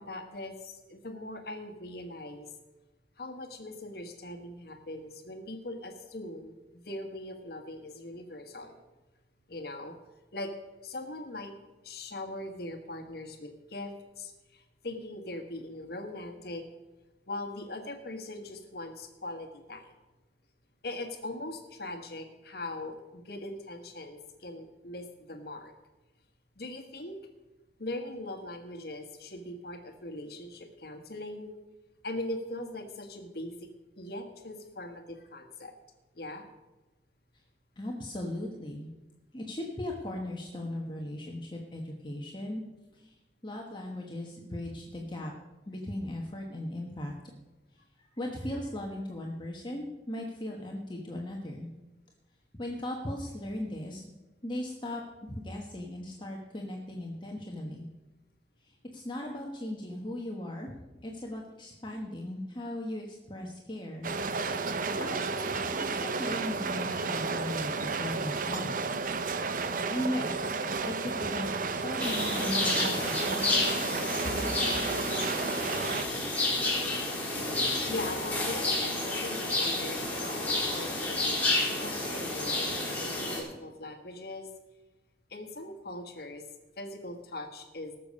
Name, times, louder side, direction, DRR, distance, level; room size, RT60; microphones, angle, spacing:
voice 1, 0.0-2.5 3.2-8.8 9.5-9.9 10.3-10.5 10.8-11.5 11.8-16.6 17.3-19.9 20.8-25.7 26.6-27.2 27.8-31.5 32.0-33.7 33.9-35.7 36.1-36.5 72.4-72.5 74.2-74.4 74.7-74.8 77.9-81.4 81.8-84.5 85.3-86.4 86.8-88.0, left 1 dB, 60° left, 5 dB, 1.4 m, -40 dB
voice 2, 37.8-38.9 39.3-42.6 42.9-43.1 43.4-45.3 45.7-47.2 48.1-51.7 52.6-54.0 54.4-55.0 55.3-57.9 58.6-60.7 61.0-64.1 65.0-65.6 65.9-68.7 69.9-70.4 70.9-73.9, left 1 dB, 25° left, 0 dB, 1.2 m, -37 dB
sound 1, 64.0-76.1, right 4 dB, 50° right, 0.7 m, -32 dB
sound 2, 72.0-83.4, left 2 dB, 10° left, 3.7 m, -30 dB
18.5 x 6.9 x 5.4 m, 1.1 s
head